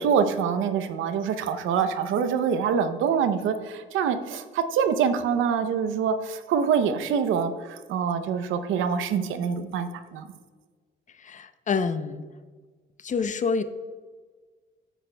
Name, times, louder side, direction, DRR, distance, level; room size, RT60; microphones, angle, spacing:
voice 1, 0.0-10.3, right 7 dB, 85° right, 10 dB, 0.6 m, -25 dB
voice 2, 11.2-12.2 13.0-13.6, left 5 dB, 40° left, 11 dB, 0.6 m, -27 dB
9.0 x 9.0 x 2.2 m, 1.5 s
cardioid pair, 90°, 20 cm